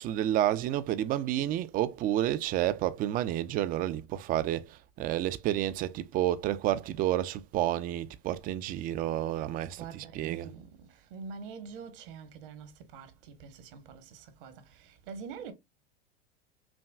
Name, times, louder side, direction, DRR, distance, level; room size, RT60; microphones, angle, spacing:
voice 1, 0.0-10.5, right 12 dB, 30° right, 0.4 m, -30 dB
voice 2, 9.7-15.5, right 6 dB, 60° right, 1.1 m, -45 dB
5.9 x 2.2 x 2.2 m
hypercardioid pair, 100°, 31 cm